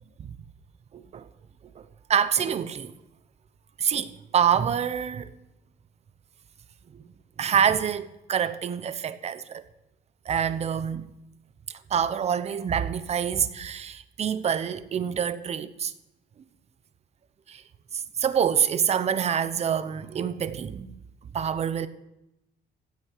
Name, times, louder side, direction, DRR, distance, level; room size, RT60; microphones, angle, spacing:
voice 1, 0.9-1.3 1.8-1.9 2.1-2.9 3.8-5.3 7.4-9.6 10.3-11.1 11.9-15.9 17.5-17.6 18.2-20.9 21.3-21.9, right 8 dB, 40° right, 0.9 m, -26 dB
16.0 x 9.2 x 6.6 m
cardioid pair, 150°, 18 cm